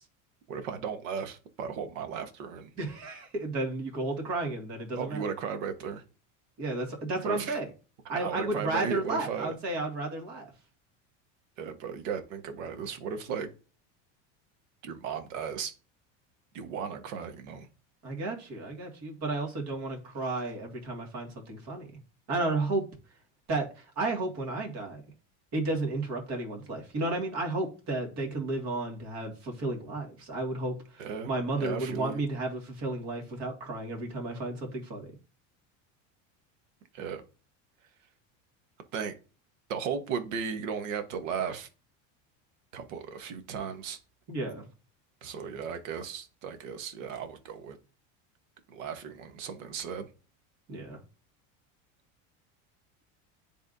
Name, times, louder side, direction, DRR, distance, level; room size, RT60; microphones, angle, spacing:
voice 1, 0.5-2.7 4.9-6.0 7.2-7.6 8.1-9.5 11.6-13.5 14.8-15.7 16.5-17.7 31.0-32.3 36.9-37.2 38.9-39.2 39.7-41.7 42.7-44.0 45.2-47.8 48.7-50.1, right 6 dB, 85° right, 1.2 m, -36 dB
voice 2, 2.8-5.2 6.6-7.7 8.1-10.5 18.0-21.9 22.3-22.8 23.5-25.0 25.5-35.1 44.3-44.7 50.7-51.0, right 2 dB, 45° right, 2.0 m, -33 dB
10.5 x 3.5 x 2.6 m
supercardioid pair, 145°, 38 cm